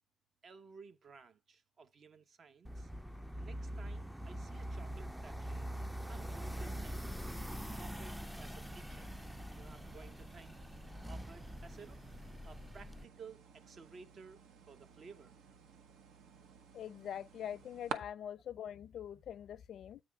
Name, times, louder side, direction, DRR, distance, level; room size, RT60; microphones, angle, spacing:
voice 1, 0.4-2.9 3.4-5.7 6.1-7.2 7.8-9.2 9.6-12.0 12.4-15.3, right 5 dB, 50° right, 0.8 m, -56 dB
sound 1, 2.6-13.0, equal, 5° right, 0.4 m, -44 dB
sound 2, 6.7-18.0, right 6 dB, 85° right, 1.0 m, -53 dB
voice 2, 16.7-20.0, left 9 dB, 65° left, 0.4 m, -44 dB
8.6 x 3.3 x 6.0 m
cardioid pair, 90°, 0 cm